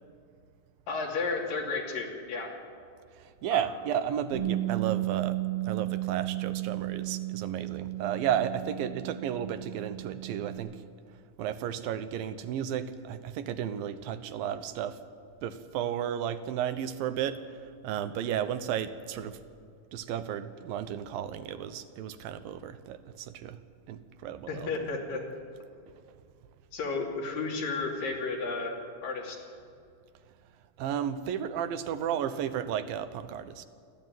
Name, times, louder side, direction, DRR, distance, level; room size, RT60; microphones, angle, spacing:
voice 1, 0.9-2.5 3.5-3.6 24.5-25.2 26.7-29.4, left 4 dB, 75° left, 0 dB, 4.6 m, -33 dB
voice 2, 3.2-5.4 5.6-10.8 11.4-15.0 15.4-17.4 17.8-19.4 19.9-23.6 23.9-24.7 30.8-33.7, right 9 dB, 85° right, 11 dB, 2.7 m, -33 dB
Bass guitar, 4.3-10.6, right 16 dB, 15° right, 6.8 m, -34 dB
28.0 x 13.0 x 9.2 m, 2.3 s
omnidirectional pair, 4.0 m